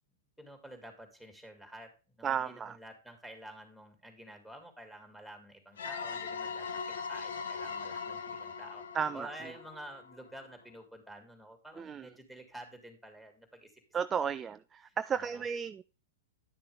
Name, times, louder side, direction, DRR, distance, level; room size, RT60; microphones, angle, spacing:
voice 1, 0.4-8.8 9.1-13.8 14.2-14.4 14.8-15.4, right 1 dB, ahead, 4 dB, 3.3 m, -50 dB
voice 2, 2.2-2.8 8.9-9.3 11.8-12.1 13.9-15.8, right 7 dB, 20° right, 12 dB, 0.4 m, -33 dB
sound 1, 5.8-10.3, left 5 dB, 70° left, 1.3 m, -40 dB
11.0 x 6.7 x 3.5 m, 0.33 s
hypercardioid pair, 110°, 0 cm